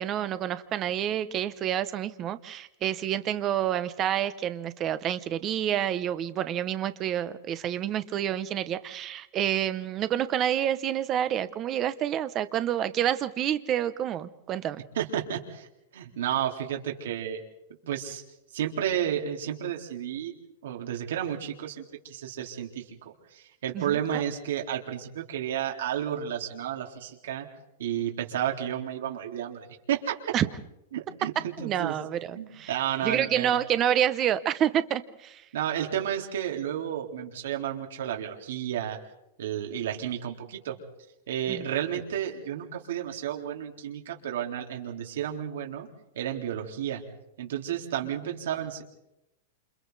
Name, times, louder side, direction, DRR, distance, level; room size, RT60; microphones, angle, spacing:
voice 1, 0.0-14.8 23.7-24.0 30.3-30.5 31.6-32.7 33.0-35.4 41.5-41.6, right 10 dB, 20° right, 13 dB, 0.8 m, -28 dB
voice 2, 15.0-15.7 15.9-17.4 17.8-18.2 18.5-20.3 20.6-22.8 23.3-27.5 27.8-30.3 30.9-32.0 32.3-33.5 35.5-39.0 39.4-40.8 41.3-45.9 46.1-47.0 47.4-48.8, right 10 dB, 70° right, 1 dB, 3.8 m, -32 dB
28.5 x 28.0 x 4.1 m, 0.86 s
supercardioid pair, 175°, 0 cm